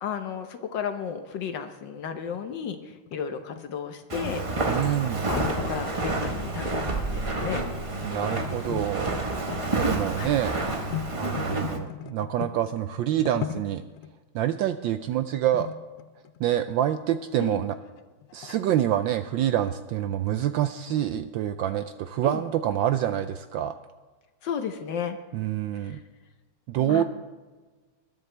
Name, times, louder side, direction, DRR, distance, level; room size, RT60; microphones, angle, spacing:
voice 1, 0.0-4.5 5.3-7.7 10.1-10.3 17.4-17.6 22.2-22.4 24.4-25.2 25.8-26.0 26.8-27.0, left 7 dB, 65° left, 7 dB, 1.3 m, -33 dB
sound 1, 2.1-6.3 6.5-7.1 7.4-8.4 8.7-8.9 9.1-12.6 13.0-14.1 14.7-14.9 15.5-16.7 17.3-17.4 18.0-18.6 19.5-19.7 20.0-20.1 20.3-20.4 20.8-21.0, left 12 dB, 85° left, 1.5 m, -38 dB
Walk footsteps, 4.1-11.8, right 2 dB, 45° right, 0.4 m, -29 dB
voice 2, 4.7-5.3 8.0-9.2 9.8-10.6 11.2-13.8 14.3-15.7 16.4-17.7 18.3-23.8 25.3-26.0 26.7-27.0, right 11 dB, 75° right, 10 dB, 1.1 m, -26 dB
21.0 x 11.5 x 3.3 m, 1.3 s
omnidirectional pair, 2.4 m